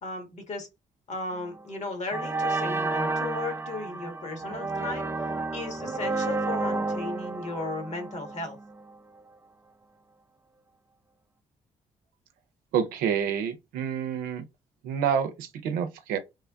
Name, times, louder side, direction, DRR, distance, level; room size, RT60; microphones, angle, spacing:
voice 1, 0.0-0.7 1.1-5.1 5.5-8.6, left 2 dB, 55° left, 1.4 m, -35 dB
sound 1, 1.4-1.6 2.1-8.9, right 3 dB, 15° right, 0.5 m, -31 dB
voice 2, 12.7-14.4 14.8-16.2, right 8 dB, 85° right, 0.6 m, -28 dB
3.3 x 2.2 x 3.5 m
supercardioid pair, 55°, 14 cm